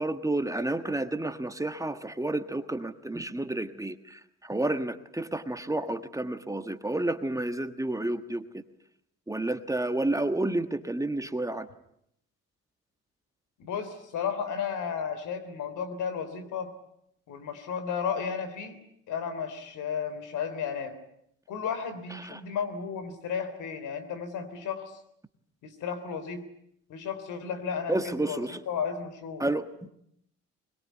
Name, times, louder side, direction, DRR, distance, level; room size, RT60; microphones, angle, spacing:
voice 1, 0.0-8.6 9.3-11.7 22.1-22.4 27.9-28.6 29.4-29.9, right 2 dB, 10° right, 9 dB, 1.4 m, -30 dB
voice 2, 13.6-16.7 17.3-18.8 19.1-21.0 21.5-24.9 25.6-26.4 26.9-28.4 28.7-29.5, left 6 dB, 80° left, 10 dB, 3.5 m, -33 dB
22.0 x 21.5 x 9.3 m, 0.74 s
cardioid pair, 90°, 30 cm